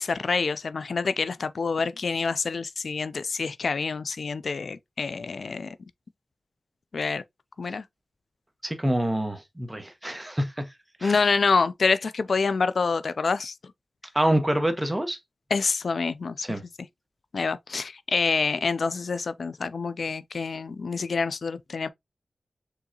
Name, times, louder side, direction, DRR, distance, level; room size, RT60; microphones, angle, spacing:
voice 1, 0.0-5.8 6.9-7.2 7.6-7.8 11.0-13.6 15.5-16.5 17.3-21.9, left 4 dB, 70° left, 0.4 m, -27 dB
voice 2, 8.6-10.7 11.0-11.2 14.1-15.2 16.4-16.6, right 1 dB, 10° right, 1.1 m, -26 dB
4.6 x 3.9 x 2.8 m
wide cardioid pair, 95°, 0 cm